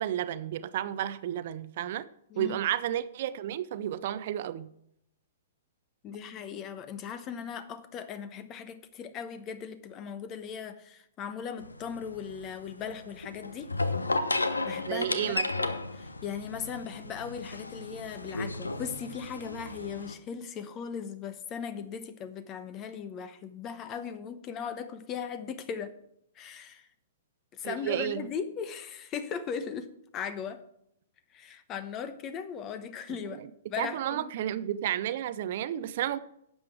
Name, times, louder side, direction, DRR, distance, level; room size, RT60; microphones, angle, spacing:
voice 1, 0.0-2.1 2.4-4.7 14.9-15.7 27.6-28.3 33.3-33.5 33.8-36.2, right 11 dB, 45° right, 0.6 m, -32 dB
voice 2, 2.3-2.6 6.0-13.7 14.6-15.4 15.9-25.9 26.4-26.9 27.5-30.6 31.3-33.4 33.7-34.3, left 7 dB, 25° left, 1.0 m, -38 dB
sound 1, 11.6-20.1, left 2 dB, 80° left, 0.9 m, -34 dB
11.5 x 7.9 x 4.7 m
figure-of-eight pair, 110°, 0 cm